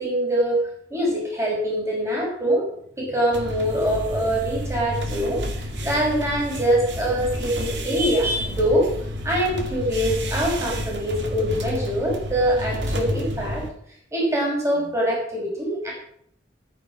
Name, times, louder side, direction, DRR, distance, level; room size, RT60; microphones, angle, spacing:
voice 1, 0.0-2.7 3.0-8.9 9.2-13.6 14.1-15.9, equal, 15° right, -3 dB, 6.1 m, -24 dB
sound 1, 3.3-13.7, equal, 75° right, 2.3 m, -30 dB
13.0 x 9.9 x 6.1 m, 0.66 s
head